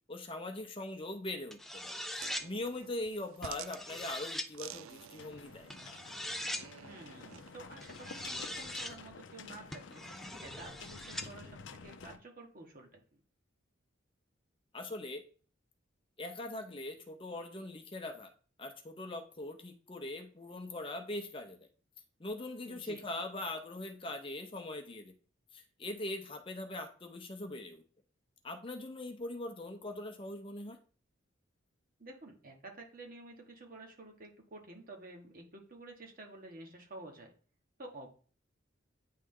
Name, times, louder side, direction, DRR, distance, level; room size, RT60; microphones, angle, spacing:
voice 1, 0.1-2.0 2.4-5.7 14.7-15.2 16.2-18.3 18.6-21.6 22.2-25.1 25.5-27.8 28.4-30.8, left 2 dB, 25° left, 5 dB, 0.7 m, -41 dB
sound 1, 1.5-2.5 3.4-4.5 5.7-6.7 7.8-9.0 9.7-11.3, left 1 dB, ahead, 0.3 m, -41 dB
sound 2, 2.2-7.6, right 11 dB, 85° right, 0.3 m, -51 dB
sound 3, 5.2-12.2, left 5 dB, 65° left, 0.5 m, -50 dB
voice 2, 6.8-10.0 10.4-13.0 22.6-23.0 32.0-37.3 37.8-38.1, right 2 dB, 45° right, 2 dB, 1.3 m, -51 dB
9.3 x 3.3 x 3.7 m, 0.40 s
head